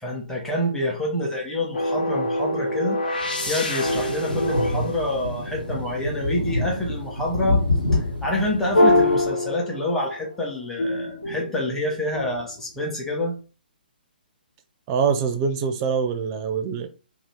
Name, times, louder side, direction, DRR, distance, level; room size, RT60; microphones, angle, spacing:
voice 1, 0.0-7.6 7.9-13.4, left 1 dB, 5° left, 0.9 m, -27 dB
sound 1, 1.7-5.9 8.7-10.3 10.8-12.5, left 1 dB, 60° left, 0.8 m, -25 dB
sound 2, 3.8-9.3, left 2 dB, 85° left, 1.0 m, -27 dB
voice 2, 14.9-16.9, right 6 dB, 25° right, 0.5 m, -24 dB
2.7 x 2.5 x 3.4 m
figure-of-eight pair, 130°, 5 cm